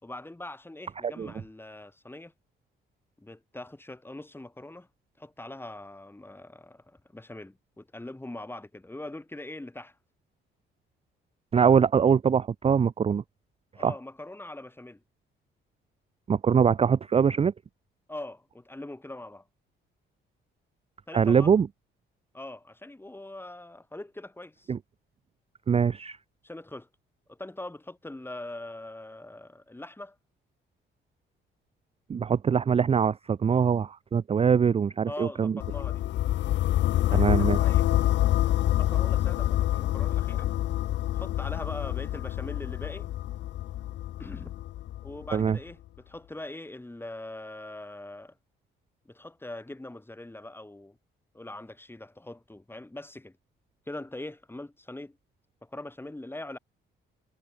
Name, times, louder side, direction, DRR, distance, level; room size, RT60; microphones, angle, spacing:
voice 1, 0.0-2.3 3.2-4.9 5.2-10.0 13.8-15.0 18.1-19.5 21.1-21.5 22.3-24.7 26.4-26.9 27.3-30.2 35.1-36.1 36.9-37.9 38.7-40.5 41.1-43.1 44.2-44.5 45.0-48.4 49.1-51.0 51.3-53.4 53.9-55.2 55.6-56.6, left 1 dB, 10° left, 4.1 m, -42 dB
voice 2, 11.5-13.2 13.8-13.9 16.3-17.5 21.1-21.7 24.7-24.8 25.7-26.2 32.1-35.6 37.1-37.6 45.3-45.6, right 7 dB, 30° right, 0.5 m, -23 dB
sound 1, 35.6-45.5, left 13 dB, 65° left, 0.5 m, -27 dB
cardioid pair, 90°, 20 cm